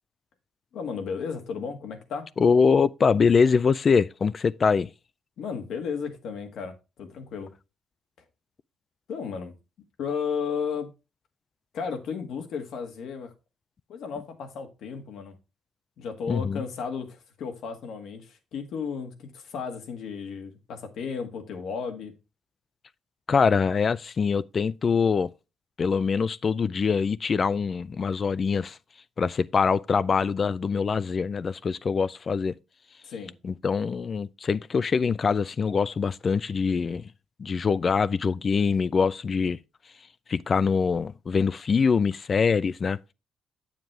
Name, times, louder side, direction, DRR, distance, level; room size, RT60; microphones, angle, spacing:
voice 1, 0.7-2.3 5.4-7.5 9.1-9.5 10.0-10.9 11.7-13.3 13.9-15.3 16.0-22.1 33.0-33.3, left 6 dB, 75° left, 1.6 m, -34 dB
voice 2, 2.4-4.9 16.3-16.6 23.3-25.3 25.8-28.8 29.2-32.5 33.4-37.1 37.4-39.6 40.3-43.0, left 5 dB, 40° left, 0.3 m, -24 dB
7.6 x 7.3 x 3.2 m
cardioid pair, 90°, 0 cm